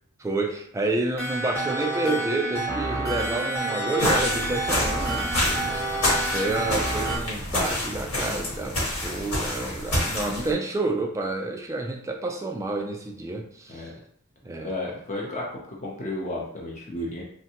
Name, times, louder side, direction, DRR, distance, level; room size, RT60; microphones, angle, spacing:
voice 1, 0.2-5.3 6.3-13.9 14.4-14.7, right 2 dB, 15° right, 2 dB, 0.3 m, -29 dB
sound 1, 1.2-7.2, right 2 dB, 10° left, 0.9 m, -29 dB
sound 2, 4.0-10.5, left 1 dB, 75° left, 1.3 m, -28 dB
voice 2, 5.3-5.7 13.7-13.9 14.6-17.2, left 1 dB, 35° left, -3 dB, 0.6 m, -33 dB
3.4 x 2.2 x 2.8 m, 0.62 s
head